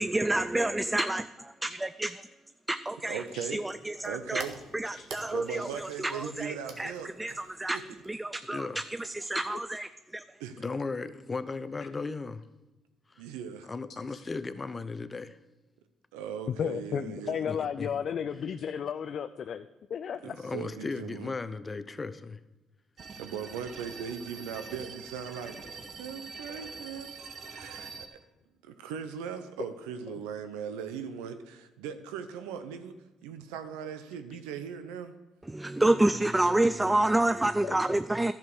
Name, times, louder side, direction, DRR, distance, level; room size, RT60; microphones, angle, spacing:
voice 1, 0.0-2.2 2.7-3.2 3.5-4.5 4.7-6.9 7.2-7.8 8.1-10.2 35.5-38.3, right 1 dB, 15° right, 0.4 m, -28 dB
voice 2, 3.1-3.6 4.0-4.5 5.2-7.4 7.7-7.8 10.4-10.6 13.2-13.7 16.1-17.5 20.2-21.3 23.2-25.6 26.0-27.1 27.5-28.2 28.6-32.9 33.2-35.1, right 7 dB, 85° right, 0.8 m, -39 dB
sound 1, 3.2-8.6, right 5 dB, 70° right, 1.5 m, -51 dB
voice 3, 8.5-8.8 10.6-12.4 13.1-13.2 13.6-15.4 17.5-18.0 20.2-22.4 37.8-38.0, left 4 dB, 30° left, 0.7 m, -36 dB
voice 4, 16.6-19.6 19.9-20.2 37.6-37.7, left 7 dB, 55° left, 0.4 m, -33 dB
sound 2, 23.0-28.1, right 4 dB, 50° right, 1.1 m, -44 dB
11.0 x 7.3 x 6.2 m
supercardioid pair, 60°, 0 cm